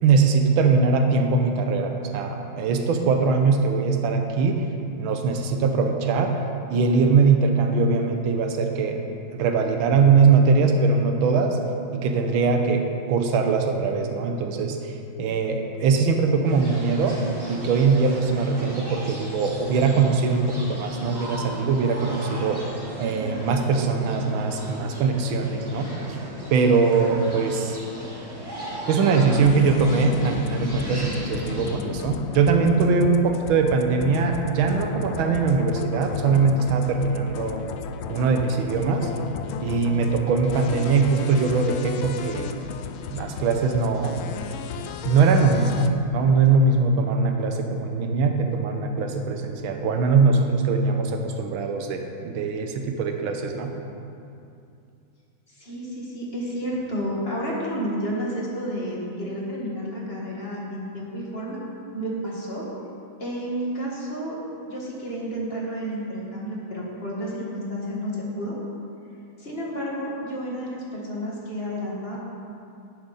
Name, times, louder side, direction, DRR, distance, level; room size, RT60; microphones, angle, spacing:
voice 1, 0.0-4.6 5.0-6.3 6.7-9.0 9.3-11.6 11.9-14.9 15.2-17.2 17.5-22.6 23.0-26.2 26.5-27.8 28.9-37.7 38.1-39.1 39.6-42.5 43.1-44.2 45.0-45.9 46.1-53.7, right 4 dB, 80° right, 4 dB, 1.7 m, -21 dB
sound 1, 16.4-31.8, equal, 10° right, 2.1 m, -37 dB
sound 2, 29.3-45.9, left 7 dB, 80° left, 1.4 m, -34 dB
voice 2, 55.5-61.6 61.9-62.7 63.2-64.4 64.7-68.6 69.4-72.2, equal, 30° left, -4 dB, 1.9 m, -31 dB
11.0 x 10.0 x 4.2 m, 2.6 s
omnidirectional pair, 2.2 m